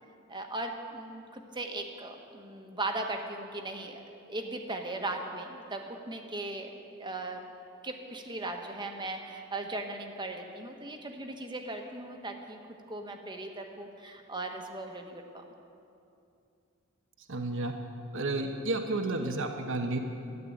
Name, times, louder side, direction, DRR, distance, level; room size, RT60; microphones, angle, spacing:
voice 1, 0.3-4.0 4.3-7.4 7.8-12.6 12.9-15.4, right 2 dB, 20° right, 3 dB, 1.3 m, -38 dB
voice 2, 17.3-17.7 18.1-20.0, right 2 dB, 65° right, 4 dB, 1.0 m, -31 dB
13.5 x 11.0 x 8.6 m, 2.6 s
head